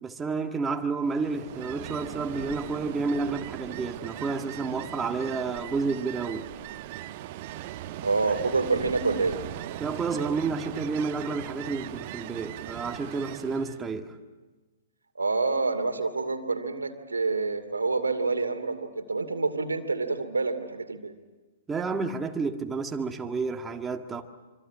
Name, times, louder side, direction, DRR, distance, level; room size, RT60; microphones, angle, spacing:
voice 1, 0.0-6.5 9.8-14.2 21.7-24.2, right 4 dB, 15° right, 1.8 m, -30 dB
Ocean, 1.0-13.8, right 13 dB, 45° right, 1.2 m, -39 dB
voice 2, 8.0-9.4 15.2-21.1, right 3 dB, 85° right, 2.6 m, -27 dB
26.0 x 25.0 x 8.7 m
figure-of-eight pair, 115°, 0 cm